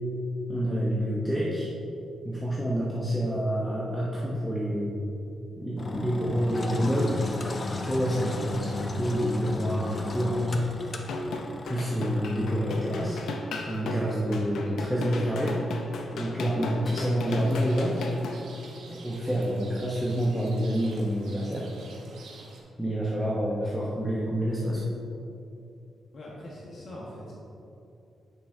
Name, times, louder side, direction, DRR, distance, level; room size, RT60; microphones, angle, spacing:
voice 1, 0.5-1.7 2.2-5.1 5.6-7.2 7.7-10.6 11.6-13.2 13.7-15.6 16.1-18.0 18.9-21.7 22.8-24.8, equal, 5° left, -5 dB, 0.9 m, -28 dB
Engine, 5.8-13.3, left 2 dB, 35° left, 0.6 m, -36 dB
sound 1, 11.0-18.4, left 3 dB, 80° left, 0.7 m, -35 dB
Rain, 17.3-22.6, right 3 dB, 90° right, 1.1 m, -48 dB
voice 2, 26.1-27.3, left 1 dB, 50° left, -5 dB, 1.5 m, -42 dB
10.0 x 6.1 x 2.7 m, 2.7 s
cardioid pair, 115°, 0 cm